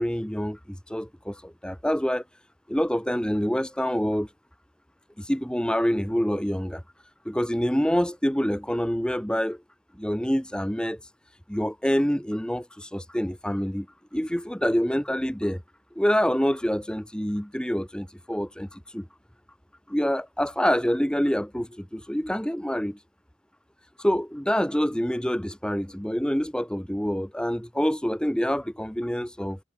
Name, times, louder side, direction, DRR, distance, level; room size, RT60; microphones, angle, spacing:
voice 1, 0.0-2.2 2.7-4.3 5.2-6.8 7.2-9.6 9.9-11.0 11.5-13.9 14.1-15.6 15.9-19.1 19.9-23.0 24.0-29.6, equal, 5° left, 1.3 m, -26 dB
head